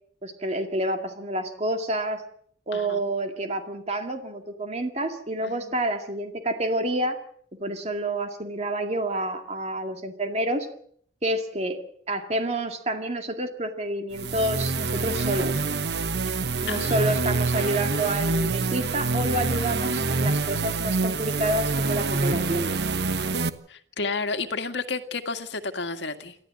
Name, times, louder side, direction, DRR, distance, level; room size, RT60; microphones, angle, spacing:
voice 1, 0.2-2.2 2.7-7.2 7.6-10.7 11.2-11.8 12.1-15.6 16.6-22.8, right 1 dB, 35° right, 5 dB, 2.1 m, -28 dB
voice 2, 2.7-3.1 5.4-5.7 16.7-17.4 23.7-26.4, left 4 dB, 75° left, 8 dB, 1.9 m, -32 dB
sound 1, 14.1-23.5, right 3 dB, 65° right, 1.1 m, -26 dB
28.5 x 13.5 x 7.6 m, 0.63 s
head